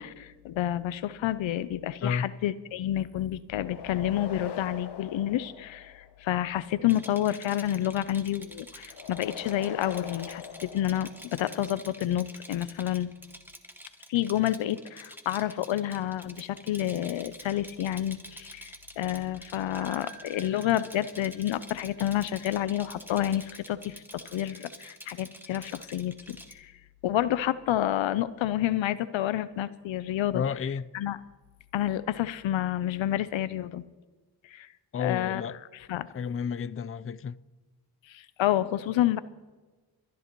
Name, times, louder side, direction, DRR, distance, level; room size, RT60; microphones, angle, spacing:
voice 1, 0.0-13.1 14.1-26.7 27.0-30.4 30.9-31.2 31.7-33.8 34.4-34.7 35.0-35.4 35.7-36.1 38.1-39.2, left 12 dB, 85° left, 0.6 m, -29 dB
sound 1, 3.5-6.3 8.9-11.6, left 7 dB, 60° left, 0.9 m, -42 dB
Rattle, 6.8-26.5, equal, 5° right, 1.6 m, -48 dB
sound 2, 19.7-22.7, right 2 dB, 75° right, 2.5 m, -50 dB
voice 2, 30.3-30.8 34.9-35.6 36.1-37.4, left 7 dB, 30° left, 0.5 m, -31 dB
27.5 x 11.0 x 3.0 m
cardioid pair, 45°, 45 cm